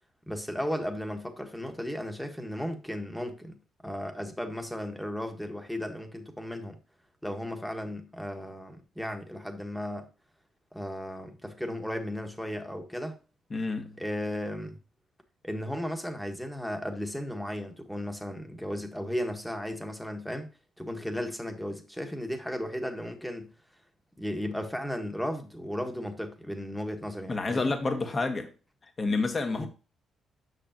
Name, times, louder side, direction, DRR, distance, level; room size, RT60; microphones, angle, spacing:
voice 1, 0.3-3.6 3.8-6.8 7.2-10.1 10.7-13.2 14.0-14.8 15.4-20.5 20.8-23.5 24.2-27.7 29.5-29.7, equal, ahead, 1.5 m, -35 dB
voice 2, 13.5-13.9 27.3-28.5 29.0-29.7, left 3 dB, 30° left, 1.4 m, -29 dB
8.0 x 6.0 x 3.0 m
cardioid pair, 90°, 0 cm